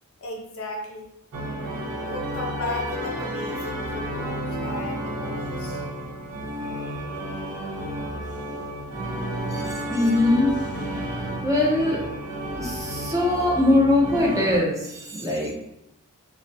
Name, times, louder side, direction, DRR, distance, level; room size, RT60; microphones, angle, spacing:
voice 1, 0.2-1.1 1.9-6.7, left 2 dB, 65° left, 0 dB, 0.5 m, -36 dB
sound 1, 1.3-14.6, right 1 dB, 80° right, 0.5 m, -31 dB
voice 2, 9.5-12.0 12.4-15.5, left 1 dB, 15° right, -4 dB, 0.5 m, -22 dB
2.2 x 2.2 x 2.6 m, 0.82 s
head